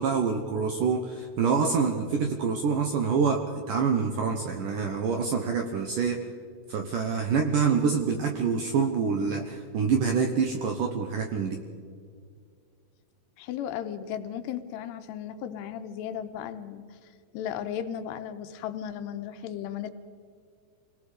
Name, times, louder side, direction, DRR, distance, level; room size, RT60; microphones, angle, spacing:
voice 1, 0.0-6.2 6.7-11.6, right 5 dB, 70° right, 4 dB, 2.1 m, -26 dB
voice 2, 13.4-16.8 17.3-19.9, left 9 dB, 80° left, 9 dB, 2.8 m, -35 dB
27.5 x 19.0 x 5.1 m, 2.2 s
omnidirectional pair, 5.2 m